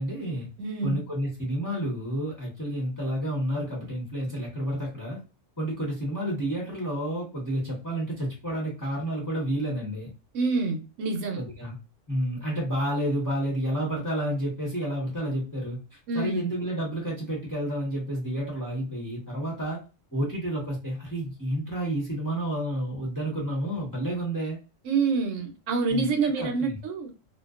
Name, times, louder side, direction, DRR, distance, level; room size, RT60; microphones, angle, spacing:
voice 1, 0.0-0.5 0.8-5.2 5.6-10.1 11.4-11.8 12.1-19.8 20.1-24.6 25.9-26.8, right 1 dB, 15° left, -3 dB, 0.8 m, -30 dB
voice 2, 0.6-1.0 10.3-11.4 16.1-16.4 24.9-27.1, right 4 dB, 75° right, 4 dB, 0.9 m, -27 dB
2.5 x 2.1 x 2.3 m, 0.33 s
omnidirectional pair, 1.3 m